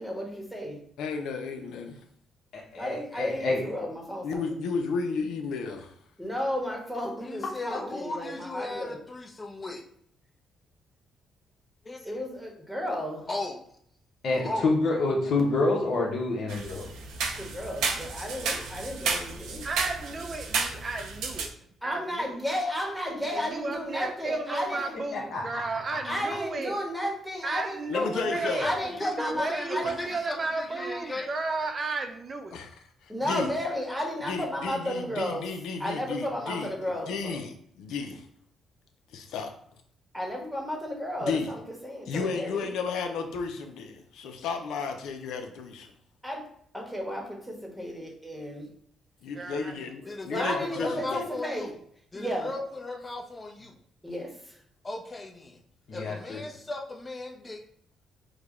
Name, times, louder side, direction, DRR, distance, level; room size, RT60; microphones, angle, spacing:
voice 1, 0.0-0.8 2.8-4.4 6.2-9.0 12.0-13.3 17.3-19.7 21.8-25.0 26.0-27.8 28.6-30.1 33.1-35.5 35.8-37.4 40.1-42.7 46.2-46.5 46.7-48.7 50.3-51.7 52.1-52.5 54.0-54.6, equal, ahead, 0 dB, 1.2 m, -33 dB
voice 2, 1.0-2.0 4.2-5.9 27.9-28.7 29.8-29.9 32.5-33.5 34.3-36.7 37.1-38.3 39.1-39.5 41.2-41.5 42.1-45.9 49.2-51.3, left 5 dB, 85° left, 5 dB, 0.6 m, -33 dB
voice 3, 2.5-3.6 14.2-16.9 25.1-25.6 55.9-56.4, left 3 dB, 60° left, -2 dB, 1.0 m, -27 dB
voice 4, 7.2-9.8 11.8-12.1 13.3-13.6 14.3-14.7 27.9-31.3 50.1-51.7 52.1-53.8 54.8-55.6 55.9-57.6, left 2 dB, 25° left, 0 dB, 0.8 m, -36 dB
sound 1, 16.5-21.5, right 4 dB, 85° right, 0.6 m, -32 dB
voice 5, 19.6-21.5 21.8-22.3 23.5-26.8 27.4-28.7 29.2-32.6 49.3-49.7 50.1-50.2, right 3 dB, 40° right, 5 dB, 0.5 m, -33 dB
4.8 x 2.3 x 3.6 m, 0.65 s
cardioid pair, 90°, 0 cm